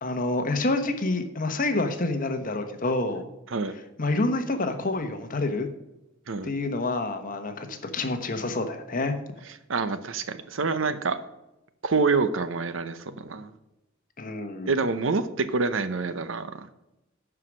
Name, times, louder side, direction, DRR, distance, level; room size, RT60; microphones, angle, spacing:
voice 1, 0.0-3.2 4.0-5.7 6.4-9.2 14.2-14.7, left 2 dB, 45° left, 7 dB, 1.2 m, -28 dB
voice 2, 9.7-11.2 11.8-13.5 14.7-16.7, right 4 dB, 70° right, 12 dB, 0.8 m, -27 dB
11.5 x 4.9 x 6.2 m, 0.92 s
head